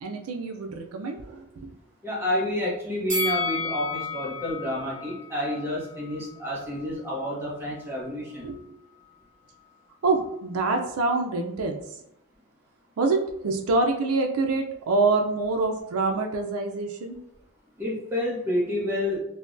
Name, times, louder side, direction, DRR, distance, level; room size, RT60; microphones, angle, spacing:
voice 1, 0.0-1.7 8.4-8.6 10.0-11.8 13.0-17.2, right 3 dB, 90° right, 4 dB, 0.4 m, -26 dB
voice 2, 2.0-8.4 17.8-19.2, left 1 dB, 10° right, -5 dB, 0.8 m, -29 dB
Bell, 3.1-6.3 6.6-6.8, left 3 dB, 35° right, 1.3 m, -32 dB
3.4 x 2.2 x 2.5 m, 0.81 s
head